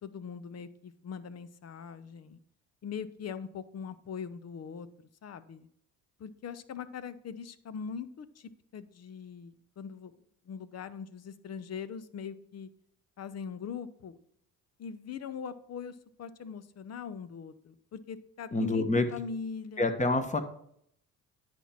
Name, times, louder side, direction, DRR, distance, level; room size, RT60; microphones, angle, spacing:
voice 1, 0.0-2.4 2.8-4.9 5.2-5.7 6.2-10.1 10.5-12.7 13.2-14.2 14.8-19.9, left 6 dB, 45° left, 14 dB, 0.8 m, -41 dB
voice 2, 18.5-19.0 19.8-20.4, left 2 dB, 20° left, 8 dB, 1.3 m, -27 dB
9.7 x 4.5 x 5.9 m, 0.69 s
supercardioid pair, 70°, 35 cm